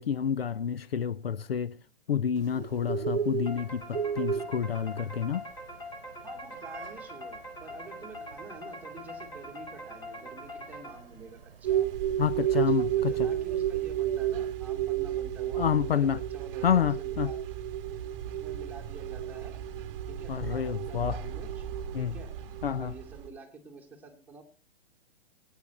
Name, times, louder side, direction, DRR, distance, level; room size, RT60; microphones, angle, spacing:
voice 1, 0.0-1.8 2.1-5.5 12.2-13.1 15.6-16.2 16.6-17.3 20.3-21.2 21.9-22.2 22.6-22.9, left 8 dB, 70° left, 0.7 m, -29 dB
Bird, 2.4-14.5, right 7 dB, 65° right, 1.1 m, -39 dB
sound 1, 3.5-11.3, left 1 dB, 15° left, 2.7 m, -43 dB
voice 2, 6.2-11.9 12.5-17.4 18.2-19.5 20.1-22.3 22.8-24.4, right 3 dB, 5° right, 2.4 m, -48 dB
sound 2, 11.6-23.3, right 11 dB, 35° right, 1.3 m, -32 dB
20.5 x 9.5 x 4.1 m
figure-of-eight pair, 120°, 31 cm